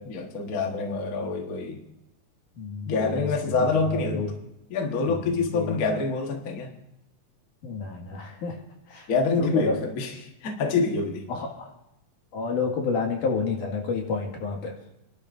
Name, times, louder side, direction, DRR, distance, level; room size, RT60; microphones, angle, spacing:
voice 1, 0.0-1.8 2.9-4.2 4.7-6.7 9.1-11.3, left 4 dB, 40° left, 2 dB, 1.3 m, -26 dB
voice 2, 2.6-3.3 3.9-4.3 5.1-5.8 7.6-8.6 8.9-9.1 9.4-9.8 11.3-11.7 12.3-14.7, left 4 dB, 80° left, 0 dB, 3.5 m, -29 dB
29.0 x 12.0 x 2.6 m, 0.89 s
omnidirectional pair, 3.6 m